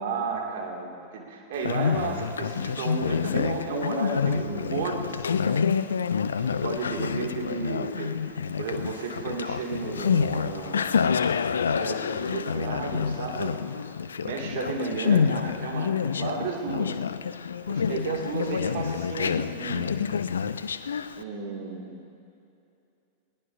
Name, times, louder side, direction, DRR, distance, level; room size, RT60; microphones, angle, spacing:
voice 1, 0.0-5.6 6.3-11.4 11.8-17.0 17.7-20.1 21.1-22.1, right 4 dB, 50° right, 0 dB, 2.3 m, -33 dB
Conversation, 1.5-21.2, left 6 dB, 70° left, 0.4 m, -28 dB
20.5 x 18.5 x 2.7 m, 2.7 s
figure-of-eight pair, 90°, 0 cm